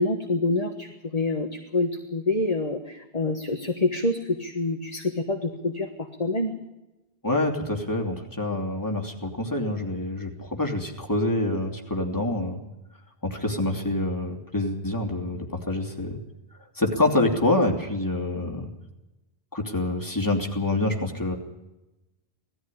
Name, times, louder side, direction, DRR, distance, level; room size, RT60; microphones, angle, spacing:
voice 1, 0.0-5.9 6.2-6.5, left 2 dB, 40° left, 3 dB, 1.6 m, -26 dB
voice 2, 7.2-12.6 13.2-16.2 16.7-18.7 19.5-21.3, left 2 dB, 20° left, 1 dB, 2.9 m, -26 dB
18.5 x 14.0 x 10.0 m, 0.99 s
omnidirectional pair, 1.0 m